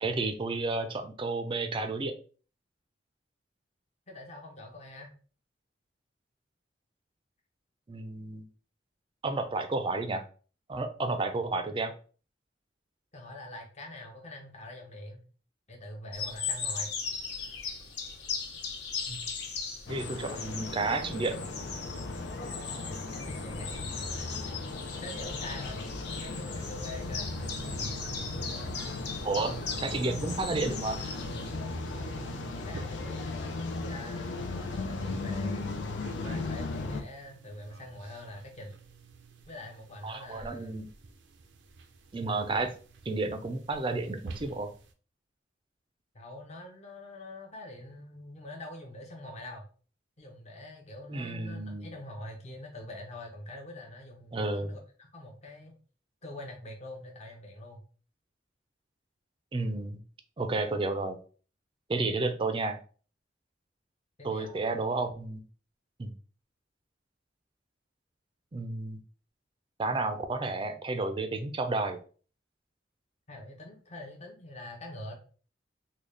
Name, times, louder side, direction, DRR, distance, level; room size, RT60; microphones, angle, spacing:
voice 1, 0.0-2.1 7.9-8.5 9.2-10.2 10.7-11.9 19.1-19.2 19.9-21.4 29.2-31.0 40.0-40.9 42.1-42.7 43.1-44.7 51.1-51.9 54.3-54.7 59.5-60.0 60.4-61.2 61.9-62.8 64.2-65.4 66.0-66.1 68.5-69.0 69.8-72.0, right 3 dB, 30° right, 8 dB, 0.4 m, -31 dB
voice 2, 4.1-5.1 13.1-15.2 15.7-17.0 23.1-24.4 25.0-27.5 27.8-27.9 32.6-35.6 36.2-38.8 39.5-40.8 46.1-49.6 50.2-55.7 56.2-57.8 64.2-64.7 73.3-75.1, left 1 dB, 40° left, 1 dB, 0.7 m, -45 dB
sound 1, 16.1-31.5, left 5 dB, 65° left, 0.9 m, -39 dB
sound 2, 19.9-37.0, left 3 dB, 90° left, 0.5 m, -37 dB
sound 3, 26.5-44.9, right 5 dB, 80° right, 0.5 m, -48 dB
3.8 x 2.2 x 3.2 m, 0.39 s
head